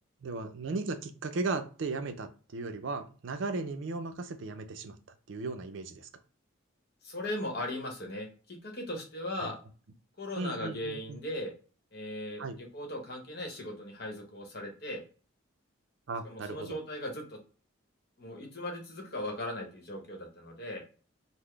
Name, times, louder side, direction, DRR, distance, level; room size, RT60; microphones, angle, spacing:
voice 1, 0.2-5.0 5.3-6.1 9.4-9.5 10.4-11.2 12.4-12.6 16.1-16.8, right 3 dB, 65° right, 8 dB, 0.4 m, -36 dB
voice 2, 7.0-9.6 10.2-11.5 11.9-15.0 16.2-17.4 18.2-20.8, left 1 dB, 50° left, 2 dB, 1.0 m, -38 dB
3.9 x 2.0 x 3.1 m, 0.38 s
head